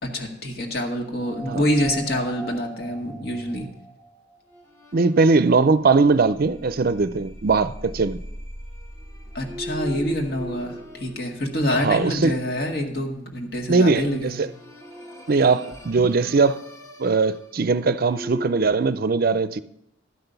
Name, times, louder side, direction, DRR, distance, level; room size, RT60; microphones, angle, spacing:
voice 1, 0.0-3.7 9.3-14.4, left 1 dB, 55° left, 2.0 m, -26 dB
sound 1, 1.2-12.3 13.9-18.7, right 1 dB, 15° left, 1.1 m, -39 dB
voice 2, 4.9-8.2 11.8-12.3 13.7-14.5 15.3-16.6 17.0-19.6, right 4 dB, 50° right, 0.5 m, -20 dB
12.0 x 5.9 x 6.8 m
head